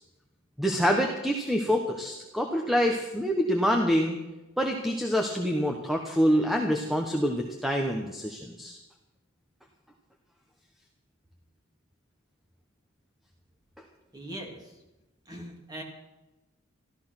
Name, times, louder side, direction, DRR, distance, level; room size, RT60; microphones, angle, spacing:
voice 1, 0.6-4.2 4.6-8.8, equal, ahead, 2 dB, 1.0 m, -26 dB
voice 2, 14.1-14.6 15.3-15.8, right 1 dB, 20° right, 1 dB, 2.6 m, -40 dB
14.0 x 13.5 x 5.9 m, 1.0 s
head